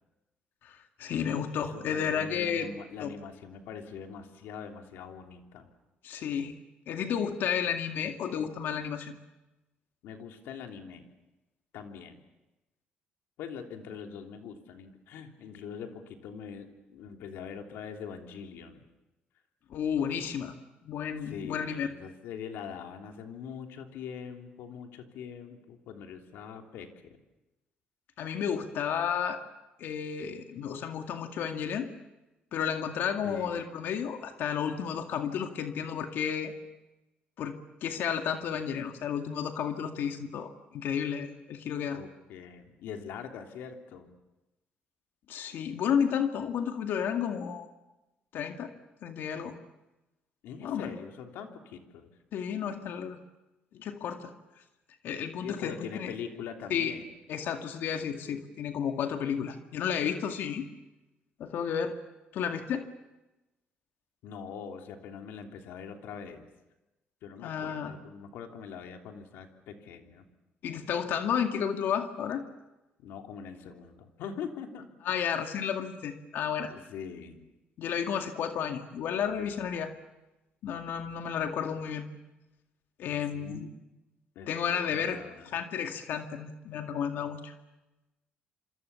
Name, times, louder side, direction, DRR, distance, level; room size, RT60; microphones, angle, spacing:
voice 1, 0.6-2.7 3.0-3.1 6.0-6.6 6.9-9.1 19.7-20.5 20.8-21.9 28.2-29.4 29.8-31.9 32.5-36.5 37.4-42.0 45.3-47.7 48.3-48.7 49.0-49.5 50.6-50.9 52.3-53.2 53.7-54.3 55.0-56.1 56.7-56.9 57.3-60.7 61.4-61.9 62.3-62.9 67.4-67.9 70.6-72.4 75.0-76.7 77.8-79.9 80.6-82.1 83.0-83.6 84.5-85.2 85.5-87.5, left 8 dB, 75° left, 5 dB, 2.2 m, -32 dB
voice 2, 1.7-5.7 10.0-11.0 11.7-12.2 13.4-18.8 21.2-27.2 33.2-33.6 41.9-44.1 50.4-52.1 55.4-57.1 64.2-66.5 67.2-70.2 73.0-74.9 76.7-77.4 83.0-83.7 84.3-85.6, left 7 dB, 90° left, 4 dB, 3.3 m, -43 dB
27.0 x 26.0 x 7.2 m, 1.0 s
cardioid pair, 105°, 4 cm